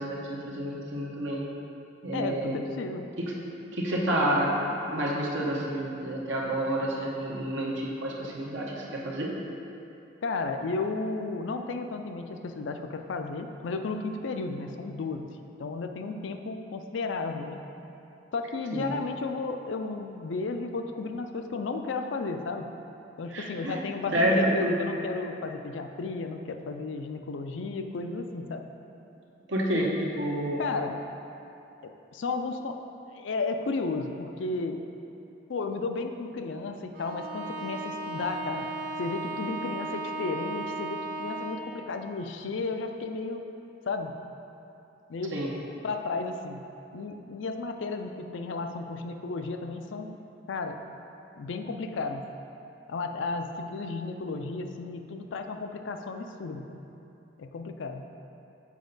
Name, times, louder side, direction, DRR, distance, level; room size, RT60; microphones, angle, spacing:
voice 1, 0.0-1.4 2.0-2.6 3.7-9.3 18.7-18.9 23.3-23.8 24.1-24.8 29.5-29.9 30.2-30.6 45.3-45.5, right 1 dB, 85° right, -3 dB, 1.1 m, -29 dB
voice 2, 2.1-3.1 10.2-15.3 15.6-17.6 18.3-22.7 23.2-28.6 29.7-29.9 30.6-31.0 31.8-32.8 33.1-34.8 35.5-38.7 39.0-43.4 43.9-44.1 45.1-45.4 45.8-46.6 46.9-50.2 50.5-50.8 51.4-52.3 52.9-56.8 57.4-58.0, left 3 dB, 80° left, 6 dB, 0.4 m, -33 dB
Bowed string instrument, 36.9-41.8, right 2 dB, 45° right, 0.6 m, -35 dB
7.3 x 4.4 x 3.9 m, 2.8 s
head